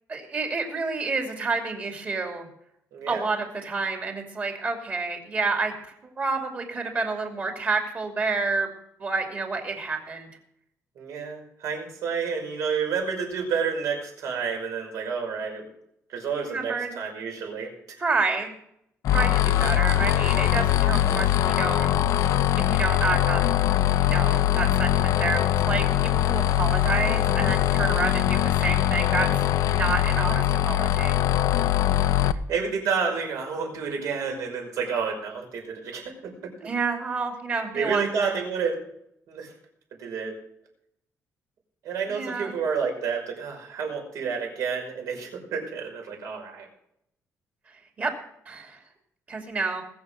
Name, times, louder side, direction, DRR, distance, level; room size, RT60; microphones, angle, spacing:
voice 1, 0.1-2.5 3.1-8.7 9.0-10.3 16.5-17.0 18.0-18.5 19.1-21.9 22.6-23.6 24.0-25.4 25.7-29.3 29.7-31.2 36.6-38.4 42.1-42.5 48.0-48.1 48.5-48.8 49.3-49.8, right 4 dB, 30° right, 2 dB, 2.6 m, -29 dB
voice 2, 2.9-3.3 11.0-15.7 16.1-17.7 32.5-36.7 37.7-38.8 39.3-39.5 40.0-40.4 41.8-46.7, right 6 dB, 75° right, 1 dB, 5.6 m, -30 dB
sound 1, 19.0-32.3, left 12 dB, 75° left, 0.7 m, -22 dB
20.5 x 7.2 x 6.5 m, 0.74 s
cardioid pair, 175°, 6 cm